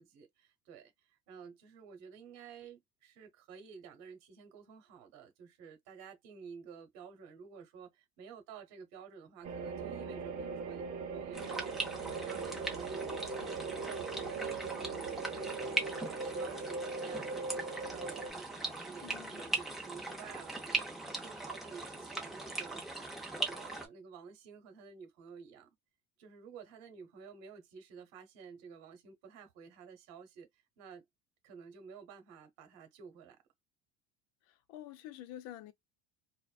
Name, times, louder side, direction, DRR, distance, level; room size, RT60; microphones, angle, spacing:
voice 1, 0.0-23.0 23.3-25.7 26.2-31.0 31.4-33.4, right 6 dB, 60° right, 0.9 m, -52 dB
sound 1, 9.4-18.3, right 4 dB, 35° right, 0.7 m, -40 dB
sound 2, 11.3-23.9, right 2 dB, ahead, 0.4 m, -40 dB
voice 2, 19.0-19.4 34.4-35.7, left 12 dB, 55° left, 0.5 m, -48 dB
2.5 x 2.1 x 2.3 m
cardioid pair, 180°, 29 cm